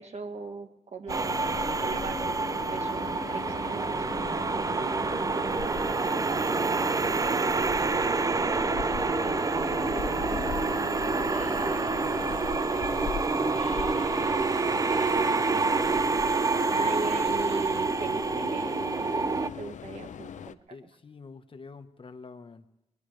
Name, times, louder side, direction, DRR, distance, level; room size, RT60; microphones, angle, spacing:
voice 1, 0.0-4.3 16.7-20.6, right 4 dB, 65° right, 6 dB, 1.7 m, -38 dB
Train, 1.1-20.5, left 8 dB, 80° left, 0.6 m, -39 dB
sound 1, 1.1-19.5, right 4 dB, 30° right, 0.5 m, -27 dB
voice 2, 4.7-5.1 6.4-6.9 7.4-15.5 20.7-22.7, left 4 dB, 45° left, 9 dB, 1.2 m, -48 dB
sound 2, 5.6-6.3 7.1-7.6 9.1-11.4, left 1 dB, 15° left, 4.6 m, -53 dB
21.0 x 20.5 x 3.3 m, 0.86 s
wide cardioid pair, 115°, 12 cm